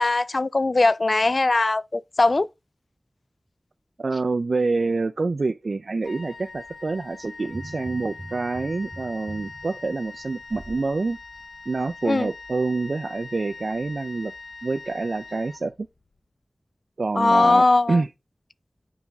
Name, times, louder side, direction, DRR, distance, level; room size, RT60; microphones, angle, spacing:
voice 1, 0.0-2.5 12.1-12.3 17.2-18.0, left 2 dB, 55° left, 0.4 m, -20 dB
voice 2, 4.0-11.2 11.7-14.3 14.6-15.7 17.0-18.1, right 3 dB, 75° right, 0.4 m, -27 dB
Wind instrument woodwind instrument, 6.0-16.1, left 3 dB, 75° left, 0.8 m, -42 dB
sound 1, 7.5-10.9 11.4-11.5, right 1 dB, 30° right, 1.2 m, -42 dB
7.1 x 5.5 x 3.4 m
wide cardioid pair, 55°, 0 cm